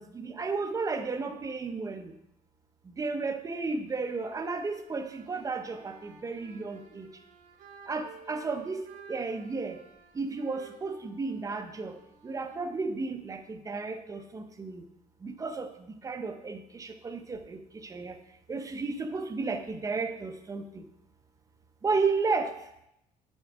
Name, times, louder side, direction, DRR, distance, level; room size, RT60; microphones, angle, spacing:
voice 1, 0.0-2.1 3.0-7.1 7.9-9.8 10.1-12.0 12.2-14.8 15.2-18.2 18.5-20.8 21.8-22.5, right 4 dB, 20° right, 7 dB, 0.6 m, -33 dB
sound 1, 3.8-13.6, right 5 dB, 60° right, 0.9 m, -55 dB
5.8 x 4.5 x 5.0 m, 0.82 s
cardioid pair, 130°, 15 cm